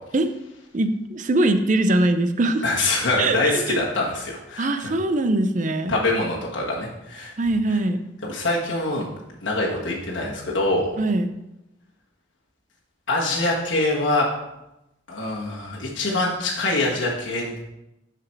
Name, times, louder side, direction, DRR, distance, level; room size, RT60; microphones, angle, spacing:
voice 1, 0.7-2.6 3.2-3.8 4.6-6.0 7.4-8.0 11.0-11.3, right 2 dB, 40° right, 9 dB, 0.5 m, -22 dB
voice 2, 2.6-4.9 5.9-7.3 8.2-9.1 9.4-10.9 13.1-14.3 15.1-17.5, left 2 dB, 75° left, -4 dB, 1.5 m, -24 dB
6.7 x 6.0 x 4.5 m, 0.90 s
head